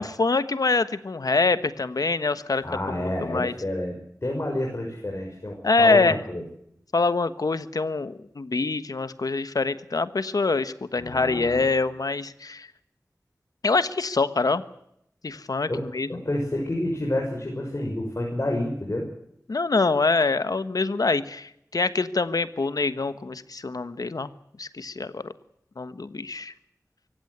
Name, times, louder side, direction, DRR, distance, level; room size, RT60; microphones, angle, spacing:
voice 1, 0.0-2.6 3.0-3.5 5.6-6.2 6.9-12.7 13.6-14.6 15.2-16.2 19.5-24.3 24.6-25.3 25.8-26.5, left 3 dB, 85° left, 13 dB, 1.3 m, -25 dB
voice 2, 2.6-6.4 11.0-11.6 15.7-19.1, left 1 dB, 45° left, 0 dB, 6.3 m, -29 dB
25.0 x 15.5 x 8.2 m, 0.76 s
wide cardioid pair, 50°, 6 cm